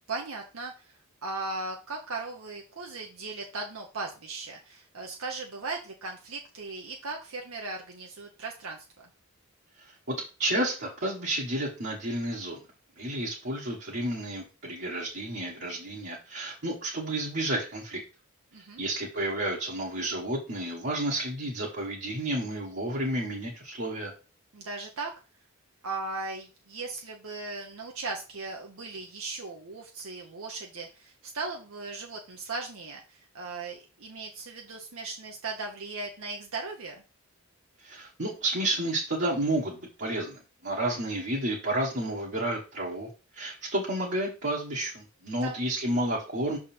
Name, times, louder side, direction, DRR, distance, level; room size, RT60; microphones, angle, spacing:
voice 1, 0.1-0.7 1.2-9.1 18.5-18.8 24.5-25.1 25.8-37.0 45.3-45.6, right 3 dB, 70° right, 0 dB, 0.9 m, -37 dB
voice 2, 9.8-12.6 13.0-18.0 18.8-24.1 37.8-46.6, right 1 dB, 50° right, -4 dB, 1.3 m, -31 dB
6.3 x 3.7 x 4.3 m, 0.33 s
head